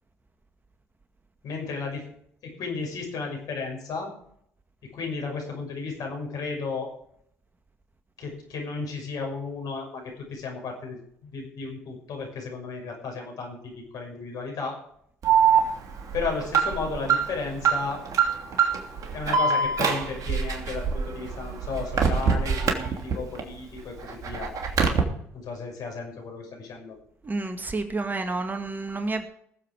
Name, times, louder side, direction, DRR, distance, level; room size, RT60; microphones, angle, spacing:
voice 1, 1.4-2.0 2.4-4.1 4.9-6.9 8.2-14.8 16.1-18.0 19.1-24.5 25.3-27.0, left 4 dB, 60° left, 1 dB, 6.3 m, -34 dB
Alarm, 15.2-23.4 23.8-25.0, right 6 dB, 55° right, 3.0 m, -24 dB
voice 2, 27.2-29.2, right 3 dB, 25° right, 7 dB, 1.9 m, -30 dB
19.5 x 7.7 x 5.0 m, 0.69 s
hypercardioid pair, 60°, 7 cm